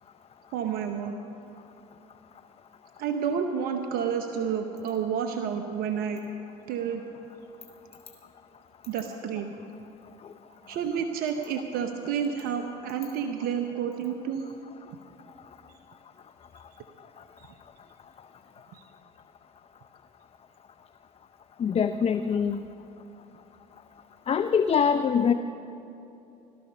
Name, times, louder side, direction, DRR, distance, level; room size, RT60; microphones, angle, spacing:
voice 1, 0.5-1.1 3.0-6.2 6.7-7.0 8.9-9.5 10.7-14.4 17.4-17.5 18.7-18.8, right 7 dB, 70° right, 6 dB, 0.9 m, -30 dB
voice 2, 21.6-22.7 24.3-25.3, left 7 dB, 40° left, 10 dB, 0.6 m, -24 dB
18.0 x 13.0 x 5.6 m, 2.9 s
hypercardioid pair, 65°, 16 cm